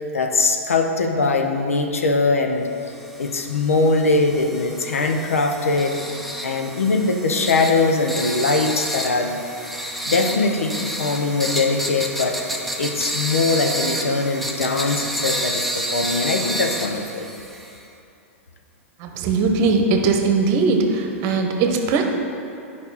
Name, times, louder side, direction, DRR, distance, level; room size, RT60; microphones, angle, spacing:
voice 1, 0.1-2.7 3.2-6.0 6.4-9.4 10.1-12.4 12.8-17.3, left 3 dB, 85° left, 4 dB, 0.8 m, -21 dB
sound 1, 2.9-17.8, right 1 dB, ahead, 0.8 m, -30 dB
voice 2, 19.0-22.0, right 4 dB, 45° right, 3 dB, 1.0 m, -20 dB
10.5 x 5.3 x 4.1 m, 2.6 s
hypercardioid pair, 105°, 7 cm